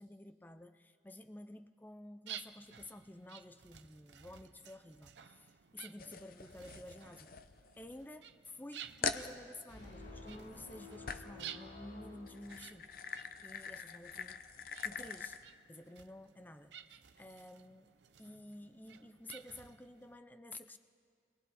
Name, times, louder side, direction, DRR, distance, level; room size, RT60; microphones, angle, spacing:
voice 1, 0.0-7.3 7.8-12.9 13.1-14.4 14.8-15.4 15.7-17.9 18.2-20.8, left 1 dB, 10° left, 9 dB, 0.4 m, -52 dB
sound 1, 2.3-20.2, right 9 dB, 80° right, 0.7 m, -54 dB
sound 2, 6.0-8.1 8.5-8.6 9.0-9.3 11.1-11.4 12.2-15.4, left 6 dB, 55° left, 0.7 m, -43 dB
sound 3, 9.7-13.2, left 2 dB, 85° left, 6.1 m, -52 dB
29.0 x 21.5 x 4.2 m, 2.3 s
head